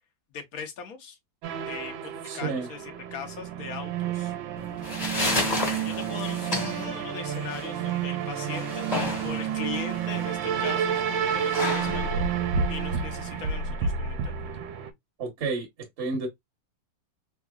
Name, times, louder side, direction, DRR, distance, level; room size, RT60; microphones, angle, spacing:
voice 1, 0.3-1.2 1.7-4.3 5.8-8.9 9.2-12.3 12.7-14.6, left 6 dB, 55° left, 1.3 m, -40 dB
sound 1, 1.4-14.9, right 7 dB, 80° right, 1.5 m, -30 dB
voice 2, 2.2-2.7 15.2-15.7 16.0-16.3, right 4 dB, 45° right, 1.2 m, -30 dB
sound 2, 4.6-13.6, left 2 dB, 25° left, 1.1 m, -33 dB
3.7 x 3.0 x 2.3 m
omnidirectional pair, 2.1 m